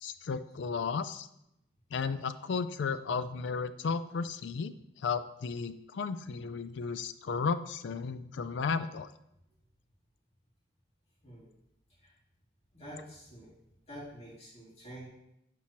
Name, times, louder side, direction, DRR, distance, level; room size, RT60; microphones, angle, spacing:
voice 1, 0.0-1.3 1.9-4.7 5.0-9.1, left 5 dB, 60° left, 14 dB, 0.3 m, -34 dB
voice 2, 12.7-13.5 13.9-15.1, equal, 30° left, -7 dB, 2.7 m, -47 dB
10.0 x 4.5 x 3.0 m, 0.82 s
head